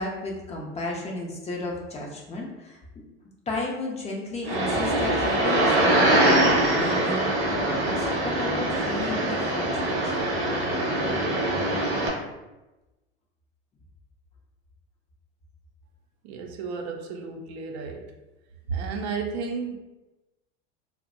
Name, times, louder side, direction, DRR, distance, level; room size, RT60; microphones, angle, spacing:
voice 1, 0.0-3.0 3.5-10.3, left 2 dB, 20° left, -2 dB, 0.4 m, -33 dB
sound 1, 4.4-12.1, right 1 dB, 35° right, 0.8 m, -23 dB
voice 2, 16.2-18.1 18.7-19.8, right 5 dB, 65° right, 3 dB, 0.5 m, -32 dB
2.5 x 2.1 x 2.5 m, 1.0 s
hypercardioid pair, 90°, 35 cm